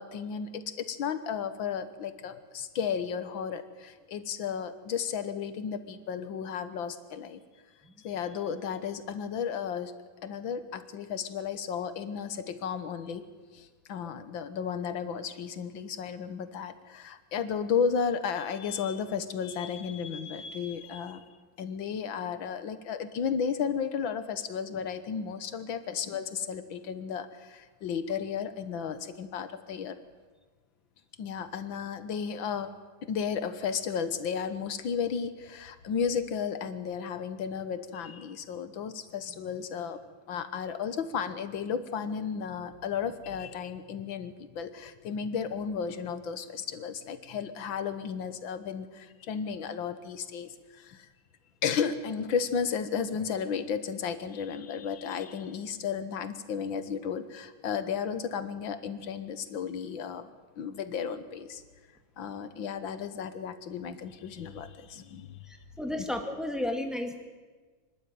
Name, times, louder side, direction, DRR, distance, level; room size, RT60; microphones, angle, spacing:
voice 1, 0.0-7.4 8.0-9.9 10.2-13.2 13.5-21.2 21.6-30.0 31.2-32.7 33.0-40.0 40.3-51.1 51.6-60.3 60.6-61.6 62.2-65.4, left 7 dB, 80° left, 11 dB, 1.9 m, -33 dB
voice 2, 65.5-67.1, left 1 dB, ahead, 3 dB, 2.0 m, -33 dB
25.5 x 12.0 x 9.2 m, 1.4 s
omnidirectional pair, 2.1 m